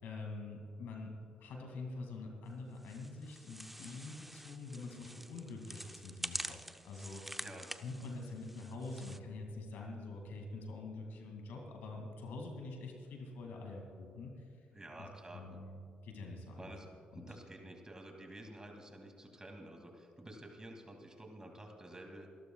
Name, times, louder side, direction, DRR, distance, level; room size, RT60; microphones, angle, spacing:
voice 1, 0.0-7.4 7.8-14.7 15.0-16.7 17.1-17.3, left 3 dB, 80° left, 1 dB, 2.4 m, -46 dB
sound 1, 2.8-9.2, right 1 dB, 5° right, 0.6 m, -47 dB
voice 2, 14.7-15.6 16.6-16.9 17.1-22.3, right 1 dB, 20° right, 2 dB, 2.5 m, -50 dB
28.5 x 12.5 x 2.4 m, 2.4 s
supercardioid pair, 55°, 3 cm